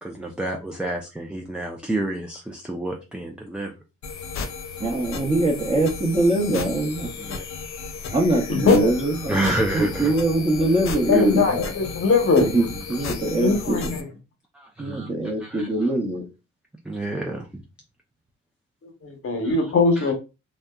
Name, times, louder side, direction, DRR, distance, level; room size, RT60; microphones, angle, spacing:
voice 1, 0.0-3.7 7.2-7.4 9.3-10.1 11.1-11.2 14.5-15.9 16.9-17.5 19.4-20.1, right 1 dB, 5° right, 0.3 m, -29 dB
sound 1, 4.0-14.0, left 4 dB, 65° left, 0.6 m, -34 dB
voice 2, 4.8-7.1 8.1-9.5 9.7-11.4 12.4-13.8 14.8-16.2, right 1 dB, 20° right, 0.8 m, -22 dB
voice 3, 8.5-8.9 11.1-12.5 13.2-14.0 19.0-20.1, left 4 dB, 45° left, 0.9 m, -20 dB
2.6 x 2.1 x 2.2 m
cardioid pair, 90°, 30 cm